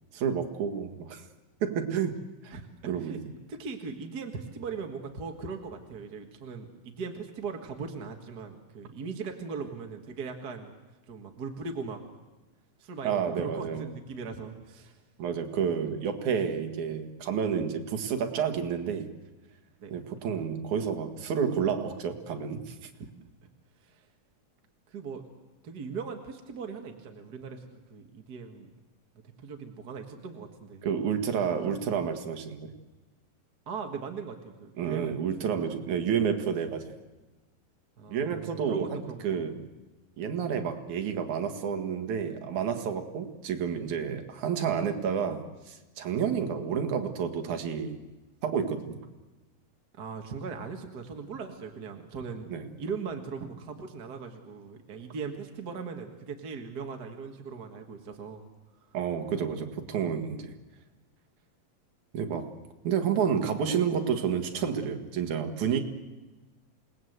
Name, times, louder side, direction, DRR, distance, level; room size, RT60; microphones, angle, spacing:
voice 1, 0.1-1.2 1.6-2.2 2.4-2.5 2.9-3.2 13.0-13.8 15.2-19.1 19.9-22.9 30.8-32.7 34.8-36.9 38.1-39.7 40.2-48.0 48.4-49.0 52.5-52.7 58.9-60.5 62.1-62.6 62.8-65.8, right 7 dB, 60° right, 6 dB, 3.0 m, -30 dB
voice 2, 3.5-10.7 11.1-12.0 12.8-15.0 19.8-20.0 23.0-23.1 23.8-24.1 24.9-25.3 25.6-28.7 29.4-30.9 31.7-31.8 33.7-35.1 35.4-35.7 38.0-39.4 49.9-52.5 52.8-58.4, right 5 dB, 40° right, 4 dB, 1.5 m, -39 dB
27.5 x 20.0 x 8.0 m, 1.2 s
omnidirectional pair, 4.0 m